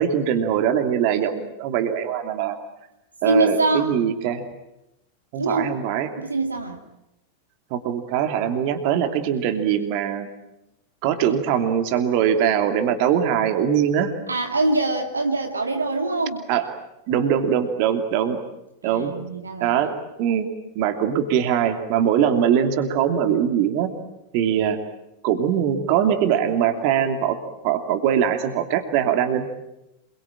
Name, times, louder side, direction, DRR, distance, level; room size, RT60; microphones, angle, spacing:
voice 1, 0.0-2.6 3.2-4.4 5.3-6.1 7.7-10.3 11.0-14.1 16.5-16.6 17.1-18.4 18.8-19.9 20.2-20.5 20.7-23.9 24.3-24.8 25.2-27.4 27.6-29.5, right 9 dB, 45° right, 7 dB, 2.8 m, -22 dB
voice 2, 3.2-4.0 5.4-5.8 6.2-6.8 14.3-16.4 18.8-20.0, right 2 dB, 80° right, 4 dB, 2.4 m, -24 dB
27.0 x 23.0 x 8.9 m, 0.90 s
figure-of-eight pair, 90°, 0 cm